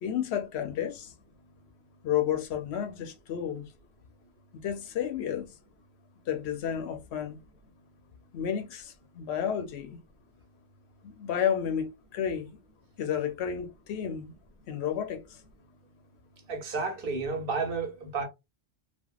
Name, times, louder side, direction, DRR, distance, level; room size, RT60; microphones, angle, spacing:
voice 1, 0.0-1.1 2.0-3.7 4.5-5.5 6.3-7.4 8.3-10.0 11.0-12.5 13.0-14.3 14.7-15.4, left 9 dB, 85° left, 0.9 m, -31 dB
voice 2, 16.5-18.2, right 4 dB, 60° right, 1.0 m, -31 dB
3.3 x 2.1 x 2.4 m
omnidirectional pair, 1.1 m